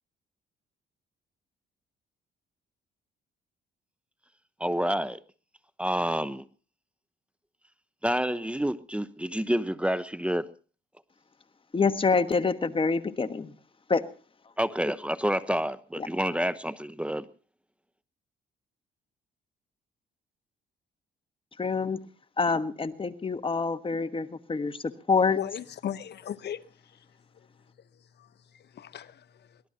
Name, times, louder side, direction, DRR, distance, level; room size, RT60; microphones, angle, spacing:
voice 1, 4.6-5.2 5.8-6.4 8.0-10.5 14.6-17.3, equal, 5° right, 0.9 m, -28 dB
voice 2, 11.7-13.5 13.9-14.1 16.0-16.1 21.6-22.1 22.4-25.4, left 4 dB, 25° left, 1.3 m, -26 dB
voice 3, 25.4-26.6 28.2-28.3 28.5-29.6, left 9 dB, 55° left, 1.0 m, -37 dB
24.0 x 18.5 x 2.8 m
cardioid pair, 90°, 20 cm